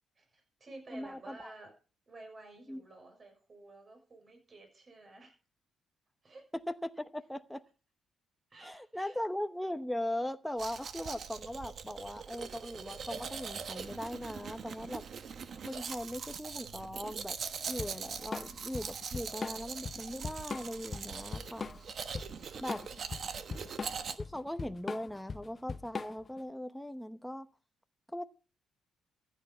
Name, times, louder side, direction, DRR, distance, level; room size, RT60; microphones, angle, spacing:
voice 1, 0.1-1.7 2.1-5.3 6.2-6.4 8.5-9.2 22.9-23.9, right 2 dB, 35° right, 6.5 m, -53 dB
voice 2, 0.9-1.5 2.7-2.8 6.7-7.6 8.6-15.0 15.6-17.4 17.7-21.7 22.6-22.8 24.2-27.5 28.1-28.3, left 1 dB, 5° left, 0.8 m, -39 dB
Domestic sounds home sounds, 10.6-24.2, right 6 dB, 55° right, 1.3 m, -42 dB
Drum kit / Drum, 17.8-26.4, left 4 dB, 35° left, 0.7 m, -41 dB
14.5 x 9.3 x 5.5 m
cardioid pair, 90°, 0 cm